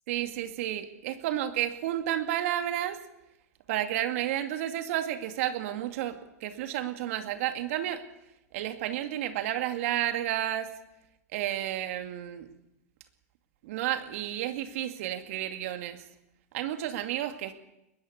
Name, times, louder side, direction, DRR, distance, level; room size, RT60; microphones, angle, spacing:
voice 1, 0.1-3.0 3.7-8.0 8.5-10.7 11.3-12.5 13.6-16.0 16.5-17.5, right 12 dB, 60° right, 7 dB, 2.4 m, -31 dB
21.0 x 17.5 x 8.3 m, 0.90 s
hypercardioid pair, 100°, 8 cm